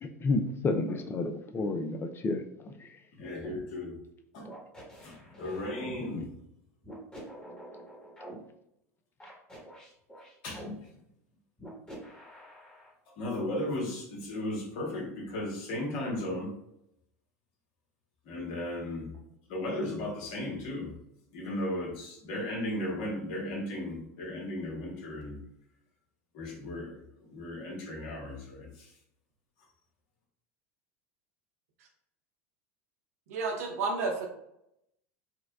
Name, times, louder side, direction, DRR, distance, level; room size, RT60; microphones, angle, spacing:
voice 1, 0.0-3.0 6.0-6.3, left 3 dB, 30° left, 7 dB, 0.5 m, -31 dB
voice 2, 3.1-4.0 4.3-4.4 5.0-6.2 10.4-11.0 13.2-16.5 18.2-19.1 19.5-20.9 21.3-25.4 26.3-28.9, left 1 dB, 60° left, -1 dB, 1.3 m, -36 dB
sound 1, 3.4-3.6 4.5-6.0 6.8-8.4 9.2-10.7 11.6-12.9, equal, 10° left, 1.3 m, -46 dB
voice 3, 33.3-34.3, right 4 dB, 80° right, 1 dB, 0.8 m, -31 dB
4.6 x 2.2 x 2.3 m, 0.78 s
hypercardioid pair, 90°, 8 cm